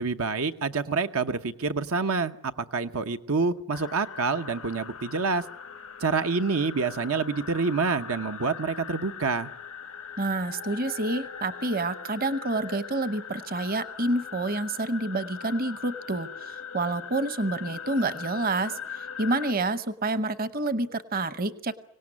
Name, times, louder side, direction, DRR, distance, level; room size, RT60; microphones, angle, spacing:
voice 1, 0.0-5.4 6.0-9.5, right 4 dB, 80° right, 8 dB, 1.0 m, -27 dB
sound 1, 3.7-19.5, left 6 dB, 90° left, 1.1 m, -41 dB
voice 2, 10.2-21.7, right 2 dB, 40° right, 13 dB, 0.9 m, -28 dB
25.0 x 18.0 x 9.8 m, 0.71 s
head